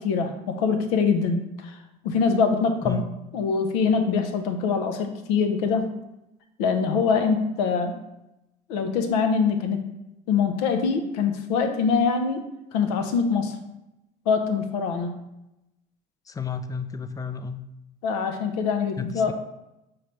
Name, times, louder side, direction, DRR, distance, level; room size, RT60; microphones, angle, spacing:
voice 1, 0.0-1.8 2.0-3.0 3.3-5.9 6.6-8.0 8.7-9.9 10.3-13.6 14.3-15.2 18.0-19.3, left 5 dB, 85° left, 6 dB, 0.6 m, -24 dB
voice 2, 16.3-17.6 19.0-19.3, left 5 dB, 20° left, 10 dB, 0.3 m, -32 dB
4.8 x 3.1 x 3.2 m, 0.91 s
supercardioid pair, 75°, 20 cm